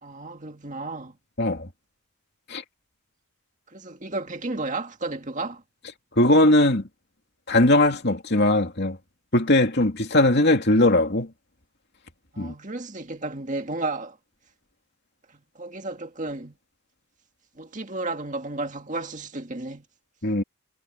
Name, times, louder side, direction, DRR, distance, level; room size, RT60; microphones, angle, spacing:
voice 1, 0.0-1.2 3.7-5.6 12.3-14.2 15.3-16.6 17.6-19.9, right 2 dB, 35° right, 2.0 m, -33 dB
voice 2, 1.4-1.7 2.5-2.6 6.2-6.8 7.5-9.0 9.3-11.3 12.4-12.5 20.2-20.4, left 1 dB, 50° left, 2.8 m, -19 dB
head